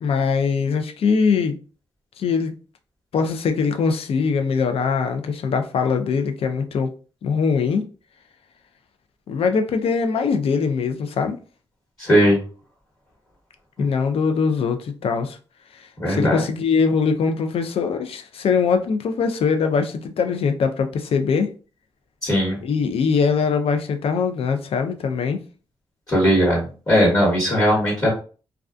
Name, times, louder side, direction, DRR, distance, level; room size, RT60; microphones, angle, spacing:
voice 1, 0.0-1.6 2.2-2.6 3.1-6.9 7.2-7.9 9.3-11.4 13.8-15.4 16.1-21.5 22.6-25.4, left 5 dB, 65° left, 0.4 m, -22 dB
voice 2, 12.0-12.4 16.0-16.4 22.2-22.6 26.1-28.1, equal, 30° left, 1.2 m, -18 dB
2.3 x 2.3 x 2.4 m
cardioid pair, 80°, 10 cm